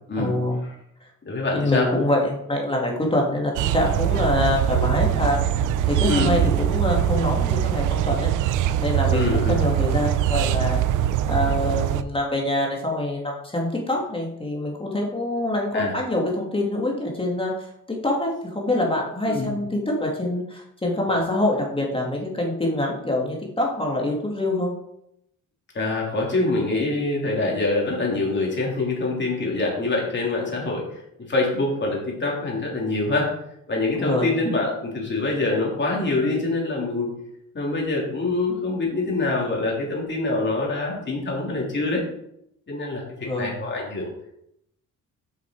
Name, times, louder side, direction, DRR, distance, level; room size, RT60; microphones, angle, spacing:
voice 1, 0.2-0.6 1.5-5.4 5.8-8.3 8.8-10.8 11.3-24.7 34.0-34.3 43.2-43.5, left 1 dB, 20° left, -1 dB, 2.1 m, -25 dB
voice 2, 1.2-1.9 6.1-6.4 9.1-9.6 15.7-15.9 19.3-19.5 25.7-30.9 31.2-33.3 33.7-37.1 37.5-42.0 42.7-44.1, left 2 dB, 40° left, -2 dB, 3.4 m, -25 dB
sound 1, 3.6-12.0, right 11 dB, 85° right, 0.5 m, -22 dB
7.0 x 5.8 x 4.7 m, 0.77 s
cardioid pair, 90°, 30 cm